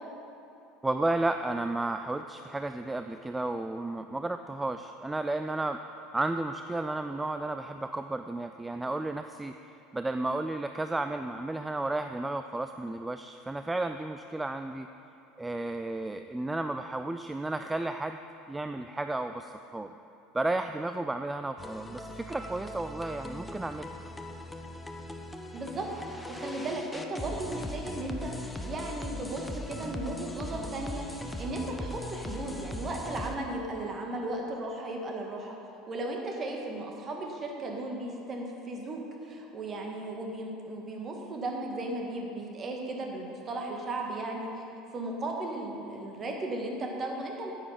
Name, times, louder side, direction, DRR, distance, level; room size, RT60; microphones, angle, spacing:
voice 1, 0.8-5.8 6.1-9.5 9.9-14.9 15.4-18.2 18.5-20.0 20.3-23.9, right 2 dB, 10° right, 8 dB, 0.3 m, -33 dB
sound 1, 21.6-33.4, left 1 dB, 10° left, 0.8 m, -39 dB
voice 2, 25.5-35.6 35.9-44.6 44.9-47.5, right 2 dB, 35° right, 1 dB, 1.8 m, -36 dB
9.6 x 8.8 x 5.2 m, 2.8 s
figure-of-eight pair, 70°, 0 cm